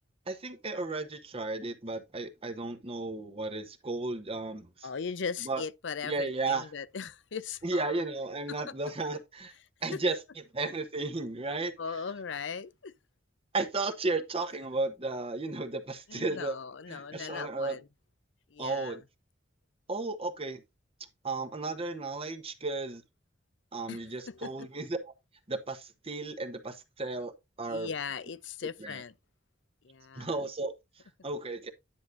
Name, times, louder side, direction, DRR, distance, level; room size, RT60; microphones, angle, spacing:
voice 1, 0.3-4.9 5.4-5.6 6.0-6.7 7.6-9.5 9.8-10.2 10.5-11.7 13.5-16.5 16.9-17.8 18.6-19.0 19.9-20.6 21.2-23.0 23.7-25.0 25.5-27.3 27.6-27.9 28.8-29.0 30.2-30.7 31.2-31.7, right 3 dB, 30° right, 1.0 m, -34 dB
voice 2, 4.8-8.0 8.5-8.7 9.9-10.0 11.8-12.9 16.1-17.9 18.5-19.0 23.9-24.5 27.7-29.1 29.8-30.3, left 5 dB, 75° left, 0.6 m, -39 dB
10.5 x 6.0 x 2.6 m
head